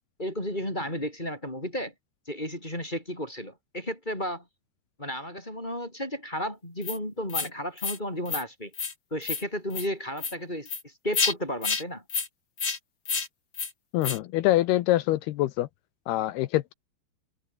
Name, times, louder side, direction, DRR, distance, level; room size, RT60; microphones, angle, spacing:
voice 1, 0.2-1.9 2.3-4.4 5.0-8.7 9.1-12.0, equal, 10° left, 5.0 m, -33 dB
sound 1, 6.8-7.0 7.3-7.5 7.8-8.0 8.3-8.4 8.7-8.9 9.2-9.4 9.7-9.9 10.2-10.3 10.7-10.8 11.1-11.3 11.6-11.8 12.1-12.3 12.6-12.8 13.1-13.3 13.5-13.7 14.0-14.2, left 5 dB, 30° left, 2.8 m, -29 dB
voice 2, 13.9-15.7 16.1-16.7, left 15 dB, 80° left, 2.5 m, -25 dB
omnidirectional pair, 5.3 m